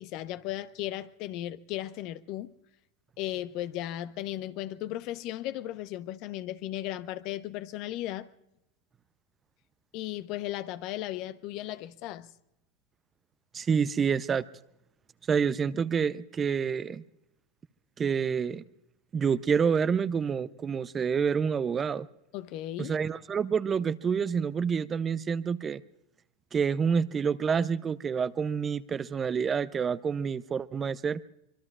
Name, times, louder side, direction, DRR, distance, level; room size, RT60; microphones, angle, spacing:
voice 1, 0.0-2.5 3.2-8.3 9.9-12.3 22.3-22.9, left 14 dB, 50° left, 0.9 m, -36 dB
voice 2, 13.5-14.5 15.3-17.0 18.0-18.6 19.1-22.1 22.8-25.8 26.5-31.2, right 6 dB, 25° right, 0.6 m, -28 dB
25.0 x 23.5 x 2.4 m
hypercardioid pair, 90°, 0 cm